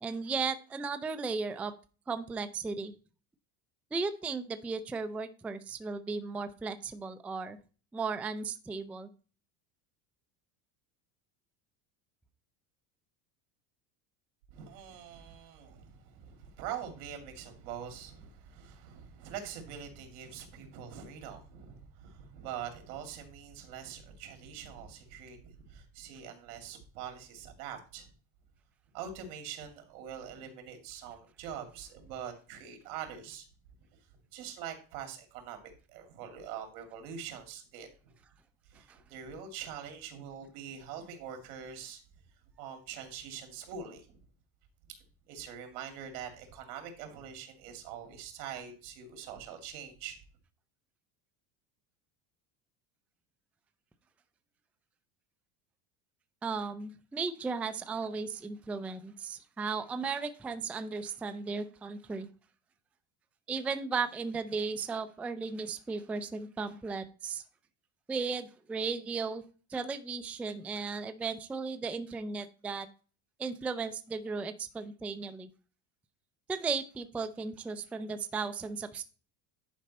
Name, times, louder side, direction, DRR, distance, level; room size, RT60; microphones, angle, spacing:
voice 1, 0.0-1.7 2.1-2.9 3.9-7.6 7.9-9.1 38.9-39.0 56.4-62.3 63.5-67.4 68.1-69.4 69.7-72.9 73.4-75.5 76.5-79.0, right 4 dB, 5° right, 11 dB, 0.3 m, -35 dB
voice 2, 14.5-28.1 28.9-33.5 33.9-34.0 34.3-38.1 38.7-42.0 42.6-44.2 45.3-50.2, right 8 dB, 80° right, 6 dB, 2.6 m, -44 dB
10.0 x 5.1 x 4.1 m, 0.36 s
cardioid pair, 140°, 45 cm